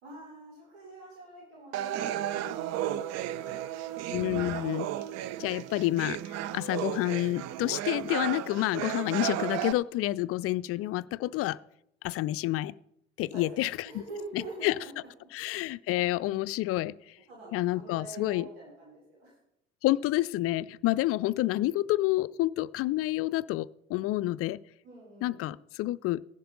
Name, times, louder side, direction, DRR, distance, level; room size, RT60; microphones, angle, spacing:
voice 1, 0.0-4.0 13.3-15.1 17.3-19.3 24.8-25.5, right 2 dB, 75° right, -3 dB, 3.6 m, -46 dB
sound 1, 1.7-9.7, right 12 dB, 55° right, 0.6 m, -34 dB
voice 2, 4.1-4.9 5.4-11.6 12.0-12.7 13.2-14.0 14.3-14.7 15.3-17.1 17.5-18.5 19.8-24.6 25.2-26.2, left 16 dB, 50° left, 18 dB, 0.4 m, -29 dB
15.5 x 11.0 x 3.9 m, 0.79 s
figure-of-eight pair, 50°, 31 cm